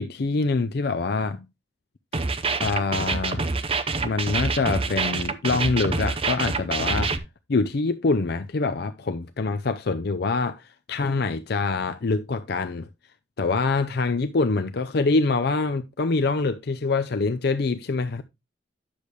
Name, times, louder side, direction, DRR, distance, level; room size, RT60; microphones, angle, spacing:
voice 1, 0.0-1.5 2.6-3.5 4.0-7.1 7.5-12.9 13.4-18.2, left 3 dB, 60° left, 0.5 m, -25 dB
sound 1, 2.1-7.2, right 4 dB, 30° right, 0.7 m, -26 dB
10.0 x 6.8 x 3.1 m
head